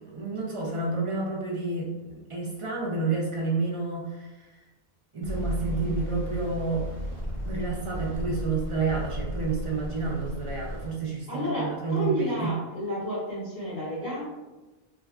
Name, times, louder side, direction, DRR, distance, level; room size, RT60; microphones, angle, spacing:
voice 1, 0.0-4.6 5.1-6.9 7.4-12.5, right 3 dB, 50° right, -3 dB, 0.4 m, -30 dB
sound 1, 5.2-10.9, equal, 35° left, 1.1 m, -34 dB
voice 2, 11.3-14.3, equal, 65° left, -14 dB, 1.6 m, -31 dB
3.2 x 2.3 x 2.3 m, 1.1 s
omnidirectional pair, 1.0 m